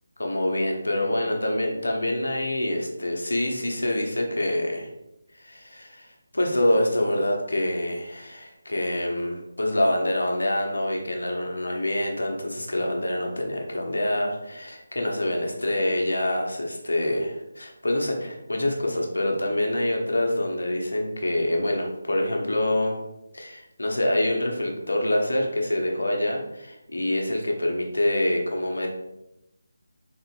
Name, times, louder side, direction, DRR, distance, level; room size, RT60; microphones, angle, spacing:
voice 1, 0.2-4.9 5.3-23.0 23.3-28.9, left 1 dB, 75° left, 1 dB, 1.0 m, -26 dB
3.9 x 3.6 x 2.5 m, 0.88 s
figure-of-eight pair, 160°, 0 cm